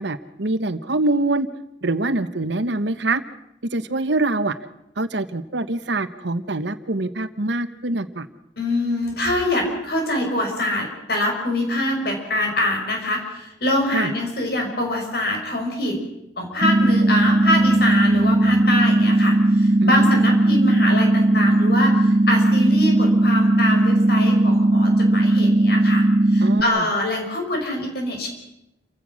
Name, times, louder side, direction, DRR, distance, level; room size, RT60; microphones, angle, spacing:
voice 1, 0.0-1.5 1.8-3.2 3.7-4.5 5.0-8.3 13.9-14.1 19.8-20.1 26.4-26.9, right 2 dB, 65° right, 12 dB, 1.1 m, -24 dB
voice 2, 8.6-16.1 16.4-28.3, left 1 dB, 55° left, 2 dB, 5.8 m, -24 dB
sound 1, 16.6-26.6, right 1 dB, 40° right, 0.8 m, -17 dB
29.0 x 16.0 x 6.4 m, 0.86 s
head